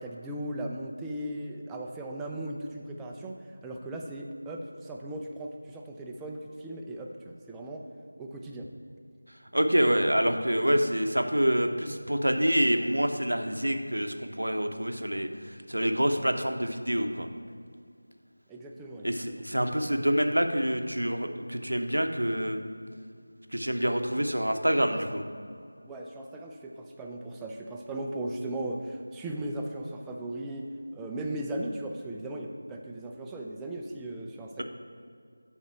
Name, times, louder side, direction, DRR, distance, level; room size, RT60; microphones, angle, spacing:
voice 1, 0.0-3.4 3.6-7.9 8.2-8.7 18.5-19.4 24.9-25.0 25.8-34.6, right 1 dB, 5° right, 0 dB, 0.3 m, -37 dB
voice 2, 9.5-15.3 15.7-17.3 19.0-22.6 23.5-25.2, equal, 85° right, 6 dB, 0.7 m, -26 dB
8.6 x 3.7 x 4.6 m, 2.3 s
figure-of-eight pair, 170°, 0 cm